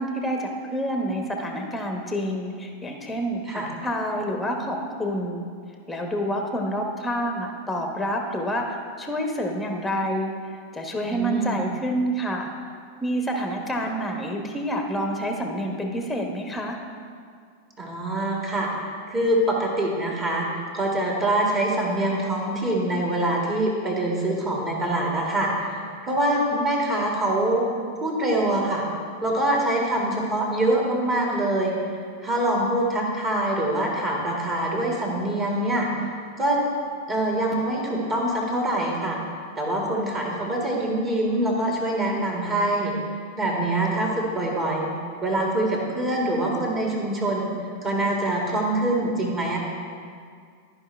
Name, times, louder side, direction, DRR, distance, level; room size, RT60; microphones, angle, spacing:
voice 1, 0.0-5.4 5.9-10.3 10.7-12.5 13.0-16.8, equal, 5° left, 2 dB, 1.0 m, -28 dB
voice 2, 11.1-11.6 17.8-18.7 19.1-27.6 28.0-28.9 29.2-31.8 32.2-36.0 36.4-36.6 37.1-39.2 39.6-42.9 43.4-44.9 45.2-49.6, right 1 dB, 25° right, -2 dB, 2.0 m, -24 dB
13.0 x 5.2 x 3.3 m, 2.2 s
figure-of-eight pair, 90°, 0 cm